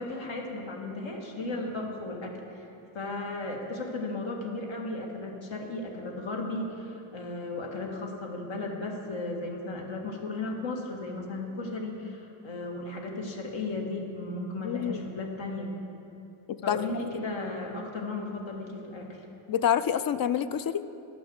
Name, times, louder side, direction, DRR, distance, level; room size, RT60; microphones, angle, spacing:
voice 1, 0.0-2.7 2.9-15.7 16.6-19.2, left 2 dB, 70° left, 0 dB, 1.8 m, -35 dB
voice 2, 14.6-15.0 16.7-17.1 19.5-20.8, left 9 dB, 50° left, 13 dB, 0.5 m, -27 dB
11.0 x 6.1 x 8.0 m, 2.8 s
cardioid pair, 90°, 47 cm